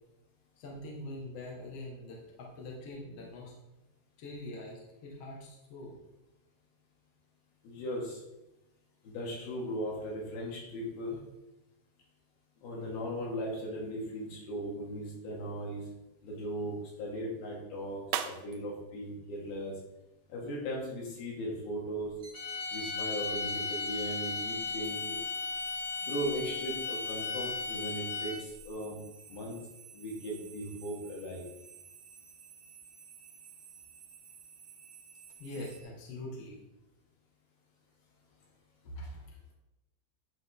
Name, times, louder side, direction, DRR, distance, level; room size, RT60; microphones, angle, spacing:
voice 1, 0.6-3.5 4.2-5.9 35.4-36.6 38.8-39.3, left 1 dB, 50° left, -2 dB, 2.4 m, -43 dB
voice 2, 7.6-8.2 9.0-11.2 12.6-15.8 16.2-19.7 20.3-22.1 22.7-25.2 26.0-29.0 29.3-29.6 29.9-31.4, equal, 90° left, -3 dB, 4.0 m, -38 dB
sound 1, 14.6-20.4, right 10 dB, 90° right, 2.5 m, -44 dB
sound 2, 22.2-35.8, right 6 dB, 50° right, 2.7 m, -53 dB
sound 3, 22.3-28.6, left 4 dB, 65° left, 2.4 m, -36 dB
11.0 x 5.3 x 3.8 m, 0.95 s
omnidirectional pair, 4.3 m